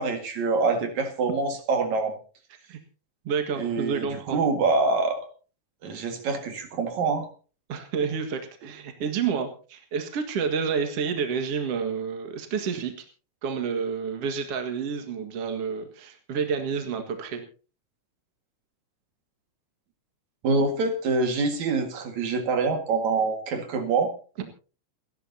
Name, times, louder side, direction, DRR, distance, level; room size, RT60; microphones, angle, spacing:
voice 1, 0.0-2.1 3.5-5.2 5.8-7.3 20.4-24.1, right 4 dB, 75° right, 5 dB, 3.3 m, -25 dB
voice 2, 3.2-4.4 7.7-12.9 13.4-17.4 24.4-24.5, right 6 dB, 55° right, 5 dB, 2.7 m, -29 dB
29.0 x 11.5 x 2.8 m, 0.36 s
omnidirectional pair, 3.3 m